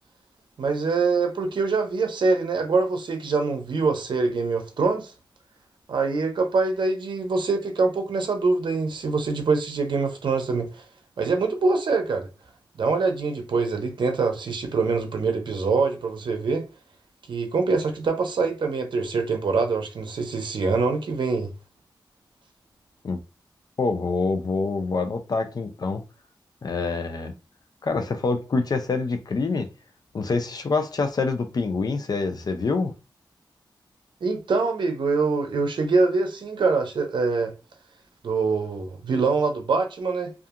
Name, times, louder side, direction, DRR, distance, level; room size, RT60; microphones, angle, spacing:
voice 1, 0.6-5.1 5.9-10.7 11.2-12.3 12.8-16.6 17.3-21.5 34.2-37.5 38.2-40.3, right 4 dB, 75° right, 0.6 m, -24 dB
voice 2, 23.8-26.0 26.6-27.3 27.8-29.7 30.1-32.9, left 4 dB, 55° left, 0.5 m, -26 dB
2.7 x 2.4 x 2.4 m
cardioid pair, 70°, 8 cm